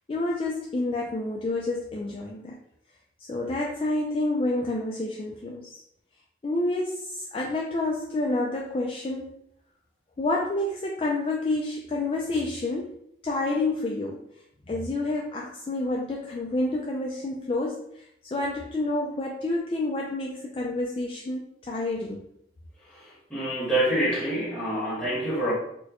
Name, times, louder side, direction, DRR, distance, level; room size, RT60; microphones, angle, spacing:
voice 1, 0.1-2.6 3.3-5.8 6.4-9.3 10.2-13.0 13.2-14.2 14.7-22.2, left 2 dB, 30° left, -2 dB, 0.3 m, -29 dB
voice 2, 23.3-25.5, right 1 dB, 5° left, -8 dB, 1.2 m, -26 dB
4.3 x 2.2 x 2.9 m, 0.73 s
head